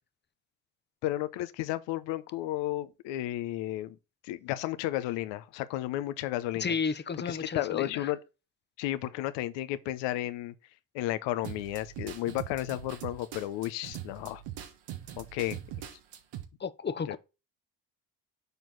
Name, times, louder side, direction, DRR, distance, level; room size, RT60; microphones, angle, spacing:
voice 1, 1.0-4.0 4.2-6.7 7.2-8.2 8.8-10.5 10.9-14.4 15.2-15.6 17.1-17.2, left 14 dB, 80° left, 0.8 m, -33 dB
voice 2, 6.6-8.1 16.6-17.2, left 5 dB, 25° left, 0.7 m, -32 dB
sound 1, 11.4-16.4, right 11 dB, 80° right, 1.3 m, -42 dB
6.8 x 4.5 x 3.9 m
supercardioid pair, 60°, 43 cm